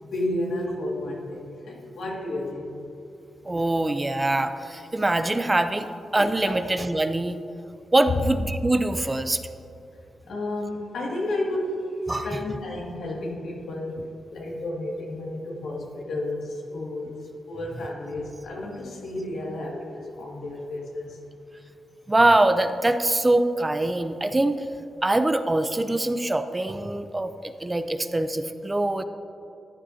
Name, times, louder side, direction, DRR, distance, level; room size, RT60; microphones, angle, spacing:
voice 1, 0.0-2.8 6.4-6.5 10.3-14.0 14.3-21.2, left 1 dB, 80° left, -3 dB, 2.3 m, -32 dB
voice 2, 3.4-5.9 6.1-7.4 7.9-9.4 12.1-12.4 22.1-24.7 25.0-29.0, right 2 dB, 20° right, 9 dB, 0.6 m, -23 dB
14.5 x 10.0 x 2.8 m, 2.8 s
cardioid pair, 70°, 0 cm